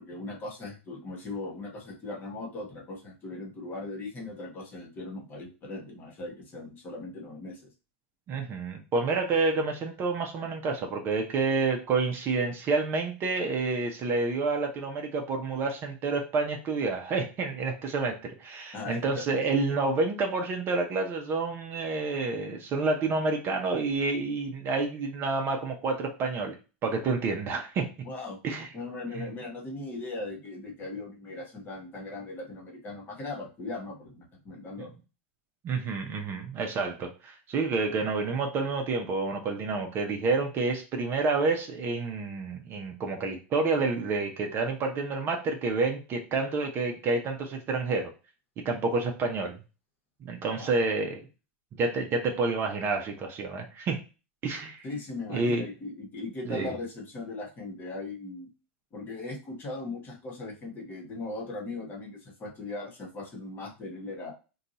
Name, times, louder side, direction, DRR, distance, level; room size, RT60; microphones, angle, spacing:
voice 1, 0.0-7.7 18.7-19.2 28.0-28.4 28.7-34.9 50.6-50.7 54.8-58.5 58.9-64.3, left 2 dB, 30° left, 0 dB, 1.1 m, -39 dB
voice 2, 8.3-26.6 26.8-27.9 28.4-28.7 29.1-29.3 34.8-34.9 35.6-48.1 48.6-49.6 50.2-51.3 51.8-54.0 54.4-54.8 55.3-55.6 56.5-56.7, right 3 dB, 35° right, 3 dB, 0.6 m, -29 dB
2.6 x 2.3 x 4.0 m, 0.32 s
hypercardioid pair, 120°, 7 cm